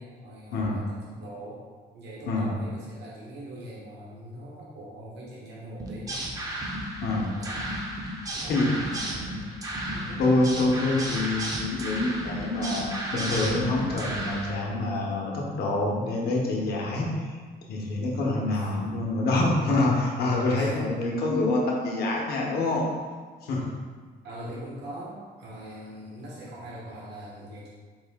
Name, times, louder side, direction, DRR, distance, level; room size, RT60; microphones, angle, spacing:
voice 1, 0.0-1.6 1.9-6.2 7.4-7.7 8.4-9.5 9.9-10.2 18.5-18.9 20.5-21.2 24.2-27.7, right 1 dB, 75° right, -6 dB, 1.1 m, -42 dB
sound 1, 5.8-14.5, right 1 dB, 20° right, 0.5 m, -33 dB
voice 2, 10.2-17.4 17.7-22.8 23.4-23.6, left 2 dB, 65° left, -2 dB, 0.9 m, -26 dB
4.8 x 2.6 x 3.5 m, 1.5 s
cardioid pair, 170°, 18 cm